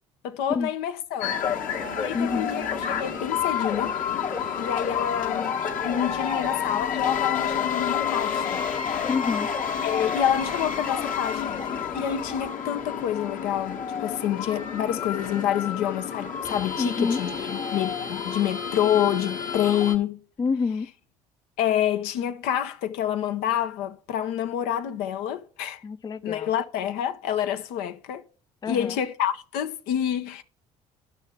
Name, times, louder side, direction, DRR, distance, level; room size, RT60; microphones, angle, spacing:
voice 1, 0.2-1.4 2.0-4.0 4.6-5.6 5.8-8.6 9.8-11.6 11.9-20.2 21.6-25.8 26.2-28.2 28.7-30.4, left 10 dB, 75° left, 0.7 m, -27 dB
sound 1, 1.2-20.0, left 7 dB, 55° left, 1.4 m, -29 dB
voice 2, 2.1-2.5 9.1-9.5 16.8-17.2 20.4-20.9 25.8-26.5 28.6-29.0, left 4 dB, 25° left, 0.5 m, -27 dB
12.0 x 5.6 x 4.5 m
hypercardioid pair, 65°, 16 cm